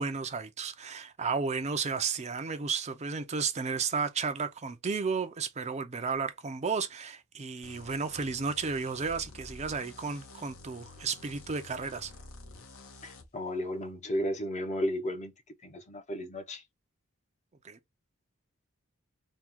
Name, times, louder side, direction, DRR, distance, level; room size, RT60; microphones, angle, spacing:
voice 1, 0.0-12.1 17.6-17.8, right 5 dB, 30° right, 0.5 m, -33 dB
sound 1, 7.6-13.3, left 3 dB, 70° left, 1.0 m, -50 dB
voice 2, 13.0-15.3 15.6-16.6, equal, 35° left, 0.8 m, -34 dB
3.6 x 2.3 x 4.5 m
head